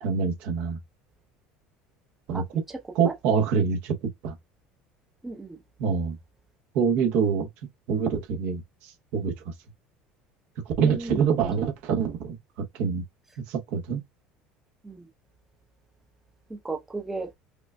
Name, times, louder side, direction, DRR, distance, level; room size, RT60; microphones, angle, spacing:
voice 1, 0.0-0.8 2.3-2.4 2.9-3.9 4.2-4.3 5.8-6.2 6.7-7.5 7.9-9.3 10.8-12.4 12.8-13.0 13.5-14.0, right 6 dB, 60° right, 1.0 m, -25 dB
voice 2, 2.3-2.8 3.0-3.1 5.2-5.6 10.8-11.7 14.8-15.1 16.5-17.3, right 2 dB, 10° right, 0.6 m, -35 dB
4.9 x 2.4 x 2.2 m
cardioid pair, 150°, 3 cm